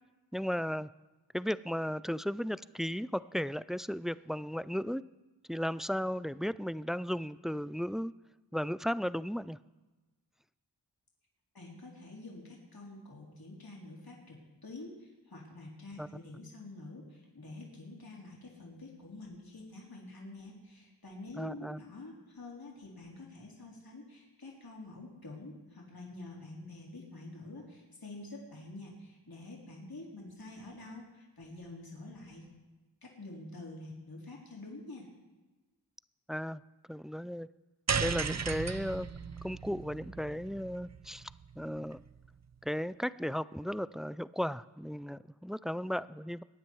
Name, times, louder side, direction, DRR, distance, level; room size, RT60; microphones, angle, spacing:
voice 1, 0.3-0.9 1.3-5.0 5.5-8.1 8.5-9.6 16.0-16.1 21.4-21.8 36.3-36.6 36.9-37.5 38.0-39.1 39.4-41.3 41.6-42.0 42.6-46.4, equal, ahead, 17 dB, 0.3 m, -35 dB
voice 2, 11.5-14.4 14.6-32.5 33.0-35.1, left 2 dB, 55° left, -3 dB, 4.0 m, -47 dB
sound 1, 37.9-42.3, right 6 dB, 40° right, 0.7 m, -36 dB
22.0 x 9.4 x 4.7 m, 1.2 s
cardioid pair, 40°, 43 cm